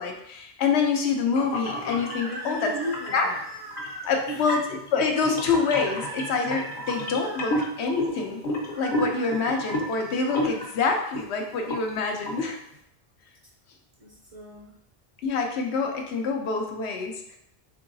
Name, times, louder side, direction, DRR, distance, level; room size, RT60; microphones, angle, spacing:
voice 1, 0.0-2.7 3.1-3.3 4.0-4.6 4.9-8.4 8.8-12.6 15.2-17.4, left 5 dB, 85° left, 3 dB, 0.9 m, -26 dB
sound 1, 1.4-2.2 2.8-3.2 3.7-11.2 11.5-11.9 12.3-12.5, left 1 dB, 50° left, 0.7 m, -31 dB
sound 2, 1.9-4.1 5.5-7.7 8.6-10.7, right 2 dB, 80° right, 1.0 m, -40 dB
voice 2, 2.3-3.4 4.3-4.5 14.0-14.7, equal, 45° right, -2 dB, 0.5 m, -35 dB
3.7 x 3.4 x 2.6 m, 0.74 s
omnidirectional pair, 1.1 m